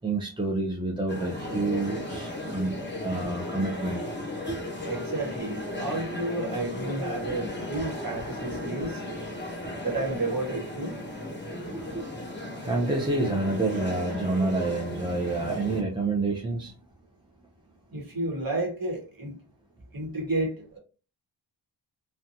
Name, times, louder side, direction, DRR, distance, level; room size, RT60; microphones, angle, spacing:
voice 1, 0.0-2.7 3.0-4.0 4.5-4.6 9.6-9.8 11.7-12.0 12.6-16.7, right 2 dB, 10° right, -2 dB, 0.4 m, -28 dB
sound 1, 1.1-15.8, left 1 dB, 25° left, 1.0 m, -35 dB
voice 2, 4.9-9.0 9.8-11.0 17.9-19.4 19.9-20.8, right 2 dB, 50° right, 1 dB, 1.0 m, -31 dB
2.7 x 2.2 x 2.5 m, 0.35 s
wide cardioid pair, 70°, 46 cm